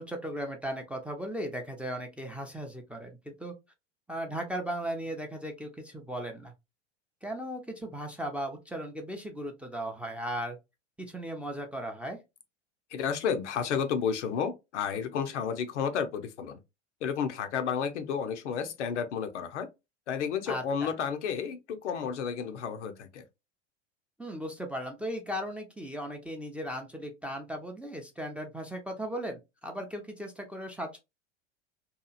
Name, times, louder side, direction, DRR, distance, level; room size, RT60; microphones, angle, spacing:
voice 1, 0.0-3.5 4.1-6.5 7.2-10.6 11.0-12.2 20.5-20.9 24.2-31.0, equal, 5° right, 0.5 m, -37 dB
voice 2, 12.9-16.6 17.0-19.7 20.1-23.2, left 7 dB, 75° left, 0.6 m, -31 dB
2.8 x 2.3 x 2.3 m
figure-of-eight pair, 85°, 36 cm